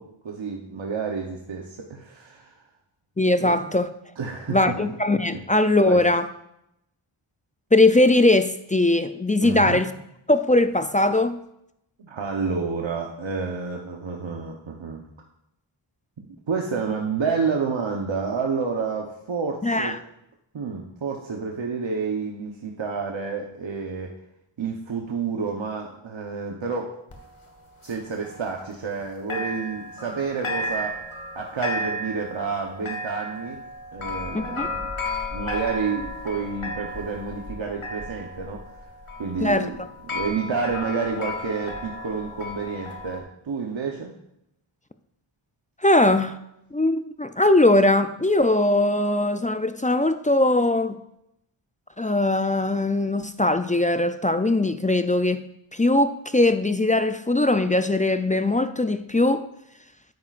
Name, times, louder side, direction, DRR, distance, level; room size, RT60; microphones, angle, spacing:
voice 1, 0.0-2.5 3.4-3.7 4.2-4.8 5.3-5.4 5.8-6.0 9.4-9.8 12.0-15.0 16.2-19.9 20.5-24.1 24.6-26.9 27.8-31.0 31.3-33.6 33.9-34.9 35.3-38.6 39.2-39.8 40.1-44.1, right 5 dB, 65° right, 1.0 m, -29 dB
voice 2, 3.2-3.9 4.5-6.3 7.7-9.9 10.3-11.4 19.6-20.0 34.3-34.7 39.4-39.7 45.8-46.4 46.7-51.0 52.0-55.4 55.7-59.5, left 2 dB, 15° left, 0.4 m, -20 dB
sound 1, 27.1-29.0 29.3-43.2, left 1 dB, 80° left, 1.5 m, -34 dB
9.5 x 8.8 x 2.5 m
wide cardioid pair, 50°, 49 cm